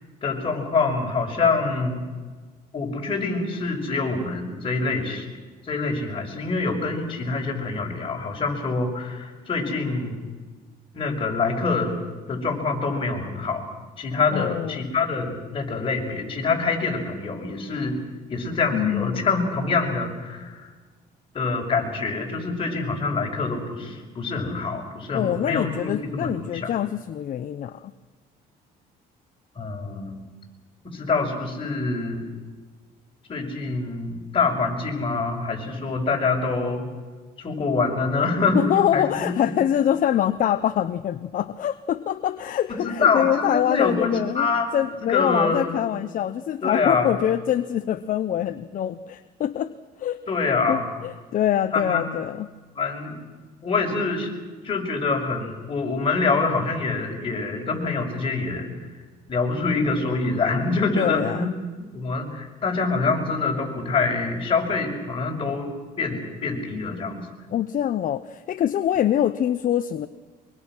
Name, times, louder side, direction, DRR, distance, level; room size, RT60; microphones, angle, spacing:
voice 1, 0.2-2.0 2.7-5.2 5.6-10.2 10.9-12.0 12.3-13.6 14.0-18.0 18.3-20.7 21.3-26.7 29.5-30.2 30.8-32.3 33.3-36.8 37.4-38.6 38.9-39.5 42.8-44.7 45.0-45.8 46.6-47.1 50.3-50.9 51.7-52.0 52.8-53.2 53.6-54.3 54.6-58.7 59.3-61.5 61.9-67.3, left 4 dB, 30° left, 0 dB, 6.1 m, -25 dB
voice 2, 14.3-14.9 18.7-19.2 25.1-27.9 38.5-49.7 50.0-50.2 50.7-52.5 61.0-61.5 67.5-70.1, left 10 dB, 55° left, 11 dB, 0.9 m, -24 dB
24.0 x 24.0 x 6.3 m, 1.4 s
cardioid pair, 110°, 17 cm